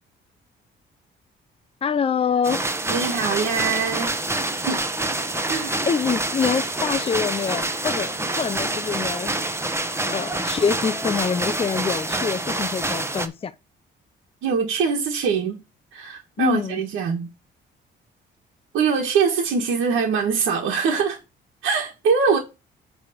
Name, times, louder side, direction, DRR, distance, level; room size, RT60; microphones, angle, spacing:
voice 1, 1.8-2.6 5.9-9.3 10.1-13.5 16.4-16.8, left 6 dB, 30° left, 0.6 m, -25 dB
sound 1, 2.4-13.3, right 2 dB, 15° right, 1.1 m, -26 dB
voice 2, 2.9-4.1 4.7-4.8 5.5-5.8 14.4-15.6 15.9-17.3 18.7-21.2 21.6-22.4, right 5 dB, 85° right, 1.6 m, -23 dB
8.3 x 3.5 x 6.6 m
cardioid pair, 90°, 20 cm